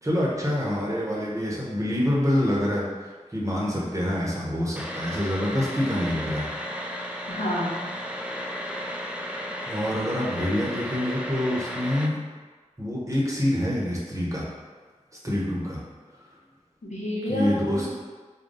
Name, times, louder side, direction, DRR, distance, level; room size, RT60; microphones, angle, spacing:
voice 1, 0.0-6.5 9.7-12.2 12.8-14.5 15.1-15.8 17.3-17.9, left 1 dB, 25° right, -5 dB, 0.9 m, -26 dB
sound 1, 4.8-12.1, equal, 10° right, 0.4 m, -34 dB
voice 2, 7.3-7.9 16.8-17.9, left 1 dB, 70° left, -6 dB, 0.9 m, -29 dB
3.7 x 2.2 x 3.8 m, 1.4 s
wide cardioid pair, 65°, 13 cm